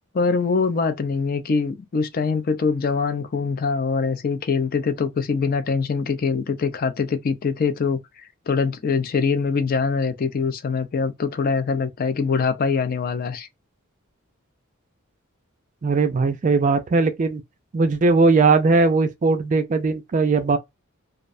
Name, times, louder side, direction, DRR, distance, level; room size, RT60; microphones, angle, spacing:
voice 1, 0.1-8.0 8.5-13.5, left 5 dB, 45° left, 0.4 m, -23 dB
voice 2, 15.8-17.4 17.7-20.6, right 3 dB, 35° right, 0.3 m, -19 dB
2.4 x 2.2 x 2.4 m
head